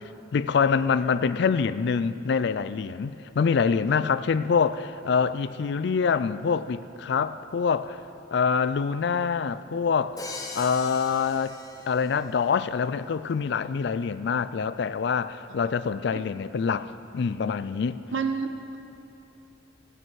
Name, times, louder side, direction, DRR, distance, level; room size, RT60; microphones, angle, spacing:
voice 1, 0.3-8.0 8.3-10.2 10.5-11.6 11.9-18.0, left 6 dB, 60° left, 0.4 m, -25 dB
Crash cymbal, 10.2-12.4, left 3 dB, 20° left, 0.8 m, -40 dB
voice 2, 18.1-18.8, right 5 dB, 75° right, 0.9 m, -29 dB
18.5 x 7.6 x 4.8 m
head